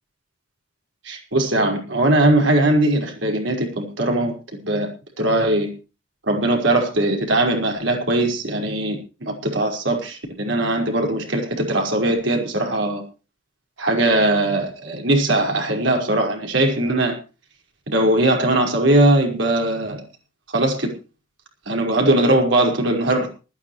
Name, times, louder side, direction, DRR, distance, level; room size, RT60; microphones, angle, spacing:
voice 1, 1.1-4.3 4.6-4.9 5.2-5.7 6.3-13.0 13.8-17.2 17.9-20.0 20.5-20.9 21.7-23.4, right 1 dB, 70° right, 5.2 m, -20 dB
19.5 x 14.0 x 3.2 m
head